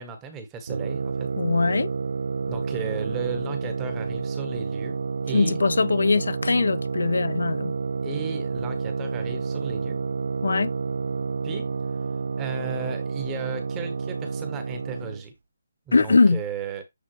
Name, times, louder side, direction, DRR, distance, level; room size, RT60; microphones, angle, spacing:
voice 1, 0.0-1.3 2.5-5.0 5.2-5.6 8.0-10.0 11.4-11.7 12.4-15.3 15.9-16.8, right 5 dB, 10° right, 1.1 m, -35 dB
sound 1, 0.7-15.2, right 4 dB, 60° right, 0.4 m, -29 dB
voice 2, 1.4-1.9 5.3-7.7 10.4-10.7 15.9-16.4, left 3 dB, 85° left, 0.9 m, -21 dB
8.1 x 3.8 x 3.1 m
hypercardioid pair, 175°, 0 cm